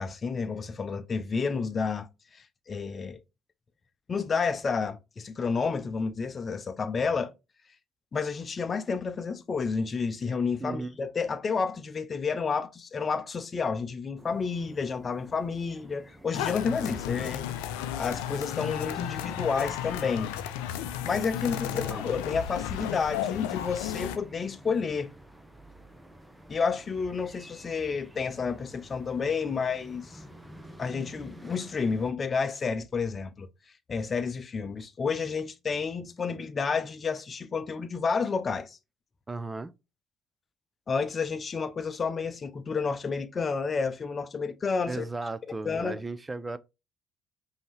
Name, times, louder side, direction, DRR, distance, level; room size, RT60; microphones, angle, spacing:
voice 1, 0.0-2.1 2.3-3.2 4.1-7.3 8.1-17.6 17.9-20.3 21.0-25.1 26.5-30.2 30.8-33.5 33.9-38.8 40.9-45.1 45.6-46.0, left 5 dB, 35° left, 0.6 m, -30 dB
voice 2, 10.6-10.9 21.5-22.0 39.3-39.7 44.9-46.6, right 3 dB, 20° right, 0.5 m, -36 dB
sound 1, 14.2-32.1, right 1 dB, 5° right, 0.9 m, -51 dB
sound 2, 16.3-24.2, left 11 dB, 75° left, 0.4 m, -34 dB
5.3 x 2.9 x 3.3 m
hypercardioid pair, 55°, 0 cm